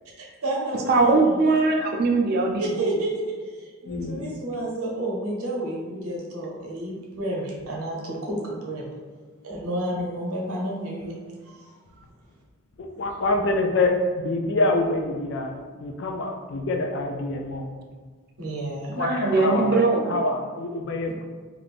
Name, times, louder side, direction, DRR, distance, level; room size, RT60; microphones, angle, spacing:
voice 1, 0.2-1.3 2.6-3.2 3.5-9.0 9.4-11.1 11.4-11.6 18.4-19.0, right 1 dB, 85° right, -3 dB, 0.7 m, -30 dB
voice 2, 0.9-3.0 18.9-20.2, right 3 dB, 45° right, 1 dB, 0.4 m, -21 dB
voice 3, 3.9-4.2 12.8-17.7 19.0-19.7 20.1-21.3, left 2 dB, 55° left, 3 dB, 0.3 m, -26 dB
2.5 x 2.4 x 3.4 m, 1.5 s
head